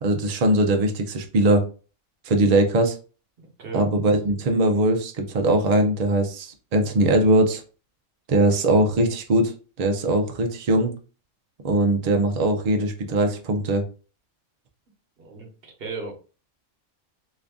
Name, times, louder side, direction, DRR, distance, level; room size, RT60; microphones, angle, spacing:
voice 1, 0.0-1.6 2.2-3.0 3.7-7.6 8.3-9.5 9.8-10.9 11.6-13.8, right 1 dB, 90° right, 3 dB, 0.3 m, -21 dB
voice 2, 3.6-4.1 15.2-16.1, right 4 dB, 45° right, 2 dB, 1.1 m, -36 dB
3.1 x 2.5 x 3.4 m, 0.36 s
omnidirectional pair, 1.4 m